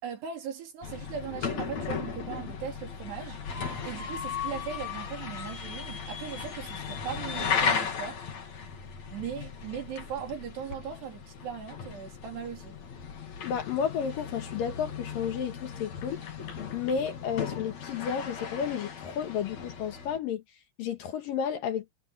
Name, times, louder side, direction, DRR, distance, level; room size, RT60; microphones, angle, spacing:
voice 1, 0.0-8.2 9.1-12.8, right 8 dB, 75° right, 5.6 m, -39 dB
sound 1, 0.8-20.2, left 6 dB, 45° left, 3.4 m, -36 dB
sound 2, 11.4-11.5 13.1-13.2 13.5-13.8 14.4-14.5 15.0-17.1, left 6 dB, 85° left, 7.6 m, -53 dB
voice 2, 13.4-16.2 16.7-20.4 20.8-21.8, left 7 dB, 65° left, 2.8 m, -32 dB
omnidirectional pair, 4.9 m